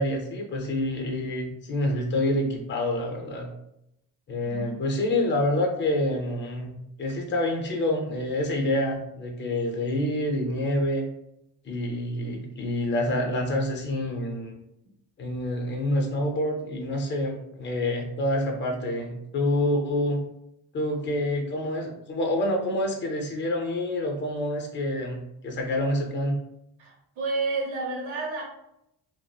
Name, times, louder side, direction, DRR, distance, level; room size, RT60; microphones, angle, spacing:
voice 1, 0.0-3.5 4.3-11.0 11.6-14.6 15.2-20.2 20.7-26.4, left 1 dB, 25° left, 2 dB, 0.5 m, -27 dB
voice 2, 4.4-4.7 26.8-28.4, right 3 dB, 85° right, -2 dB, 1.1 m, -30 dB
2.9 x 2.0 x 2.3 m, 0.80 s
cardioid pair, 110°, 45 cm